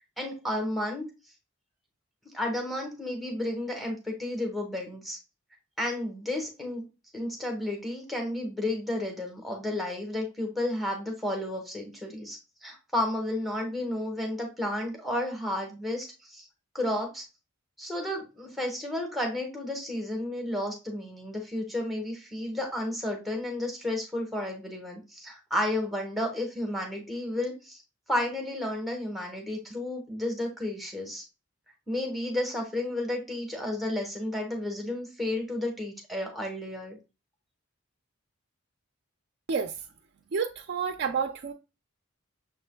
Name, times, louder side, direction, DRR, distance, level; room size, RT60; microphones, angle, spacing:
voice 1, 0.2-1.0 2.3-5.2 5.8-6.8 7.1-16.5 16.7-17.2 17.8-27.8 28.1-31.2 31.9-37.0, left 1 dB, ahead, 1.0 m, -32 dB
voice 2, 40.3-41.5, right 6 dB, 50° right, 0.4 m, -29 dB
6.5 x 3.2 x 2.2 m
head